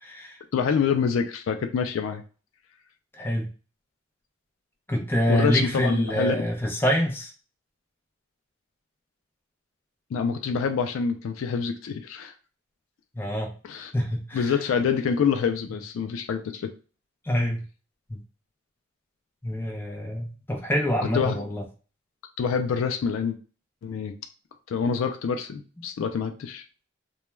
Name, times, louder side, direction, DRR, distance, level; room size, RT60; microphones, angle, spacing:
voice 1, 0.0-0.4 3.1-3.5 4.9-7.3 13.1-13.5 13.9-14.5 17.2-17.6 18.1-18.2 19.4-21.6, equal, 10° left, 0 dB, 0.5 m, -26 dB
voice 2, 0.5-2.2 5.3-6.4 10.1-12.3 13.6-13.9 14.3-16.7 21.1-21.4 22.4-23.4 23.8-24.1 24.7-26.6, left 6 dB, 65° left, 7 dB, 0.3 m, -26 dB
2.2 x 2.1 x 3.0 m, 0.36 s
head